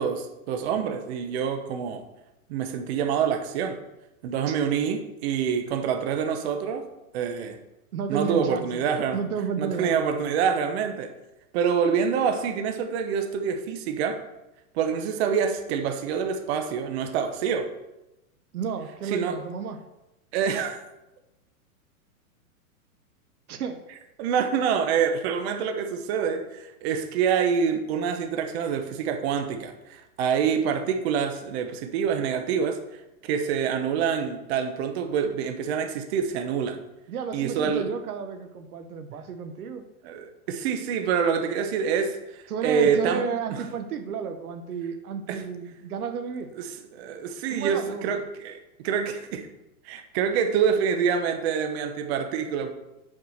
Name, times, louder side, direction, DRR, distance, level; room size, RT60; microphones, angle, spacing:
voice 1, 0.0-2.0 2.5-3.8 4.2-6.9 7.1-7.6 8.1-9.2 9.6-11.1 11.5-14.2 14.7-17.7 19.1-19.4 20.3-20.8 24.2-32.8 33.3-36.8 37.3-37.9 40.0-43.3 45.3-45.4 46.9-48.6 48.8-49.5 49.8-52.7, right 7 dB, 45° right, 7 dB, 1.0 m, -26 dB
voice 2, 7.9-8.8 9.1-9.9 18.5-19.8 23.5-23.8 37.1-39.9 42.5-46.5 47.5-48.1, right 6 dB, 80° right, 8 dB, 1.0 m, -32 dB
6.0 x 4.8 x 6.3 m, 0.95 s
hypercardioid pair, 135°, 44 cm